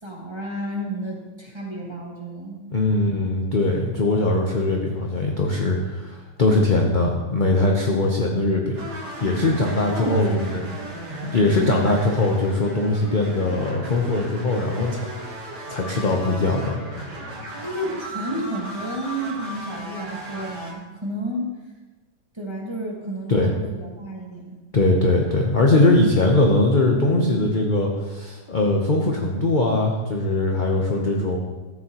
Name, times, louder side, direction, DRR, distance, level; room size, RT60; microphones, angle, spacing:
voice 1, 0.0-2.6 9.9-10.6 11.6-11.9 17.6-21.5 22.3-24.6, right 1 dB, 15° right, -3 dB, 1.5 m, -31 dB
voice 2, 2.7-8.8 9.2-10.6 11.2-15.2 15.7-16.8 23.3-23.5 24.7-31.4, left 2 dB, 40° left, 0 dB, 0.7 m, -21 dB
sound 1, 8.7-20.7, right 1 dB, 65° right, 2.3 m, -36 dB
13.5 x 8.6 x 3.0 m, 1.2 s
omnidirectional pair, 1.9 m